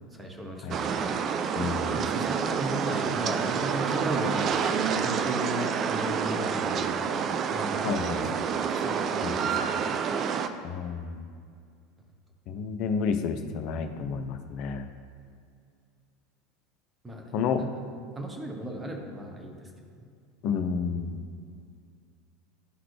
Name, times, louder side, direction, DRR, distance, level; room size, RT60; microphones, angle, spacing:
voice 1, 0.1-0.8 1.9-7.2 7.5-10.0 17.0-17.8 18.1-20.0, right 1 dB, 15° right, 1 dB, 1.2 m, -36 dB
voice 2, 0.6-1.0 1.5-2.1 7.8-8.3 9.2-9.6 10.6-11.2 12.5-14.9 17.3-17.6 20.4-21.2, left 6 dB, 50° left, 8 dB, 0.5 m, -31 dB
sound 1, 0.7-10.5, right 6 dB, 40° right, 0.4 m, -28 dB
11.0 x 3.9 x 3.2 m, 2.2 s
figure-of-eight pair, 75°, 0 cm